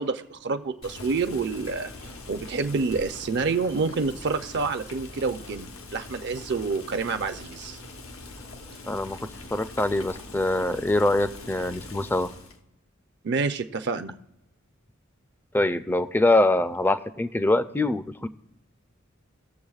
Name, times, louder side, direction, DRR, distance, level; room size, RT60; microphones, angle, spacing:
voice 1, 0.0-1.9 2.3-7.8 13.2-14.2, right 4 dB, 55° right, 9 dB, 0.5 m, -28 dB
Boiling, 0.8-12.6, left 2 dB, 85° left, 1.0 m, -42 dB
voice 2, 8.9-12.3 15.5-18.3, left 2 dB, 10° left, 12 dB, 0.4 m, -24 dB
19.0 x 7.0 x 2.4 m, 0.88 s
head